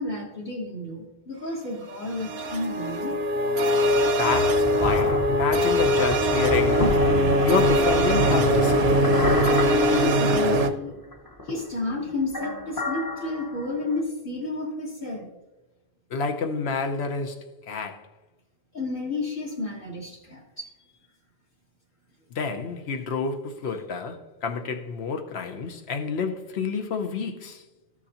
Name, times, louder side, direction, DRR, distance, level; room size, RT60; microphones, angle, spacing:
voice 1, 0.0-3.2 9.9-11.0 11.4-15.3 18.7-20.7, left 2 dB, 55° left, 1.5 m, -31 dB
sound 1, 2.1-10.7, equal, 75° right, 0.9 m, -22 dB
sound 2, 3.9-10.7 11.1-11.9 12.3-14.0, left 1 dB, 25° left, 0.7 m, -29 dB
voice 2, 4.2-6.9 7.4-9.1 16.1-18.1 22.3-27.6, left 5 dB, 85° left, 1.0 m, -29 dB
13.5 x 6.2 x 2.8 m
omnidirectional pair, 1.1 m